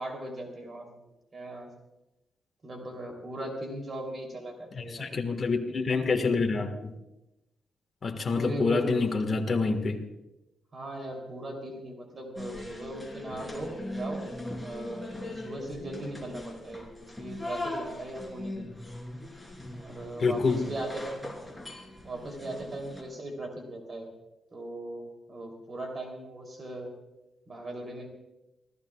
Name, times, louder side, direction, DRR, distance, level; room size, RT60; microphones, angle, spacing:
voice 1, 0.0-1.7 2.6-5.1 8.3-8.9 10.7-14.2 14.6-16.9 17.2-18.6 19.7-21.3 22.0-24.1 24.5-25.0 25.3-26.9 27.5-28.1, right 1 dB, 35° right, 2 dB, 3.3 m, -38 dB
voice 2, 4.7-6.9 8.0-10.1 20.2-20.6, left 4 dB, 40° left, 4 dB, 1.7 m, -27 dB
sound 1, 12.4-23.0, left 1 dB, 5° left, 3.5 m, -40 dB
27.5 x 15.0 x 2.4 m, 0.96 s
cardioid pair, 120°, 0 cm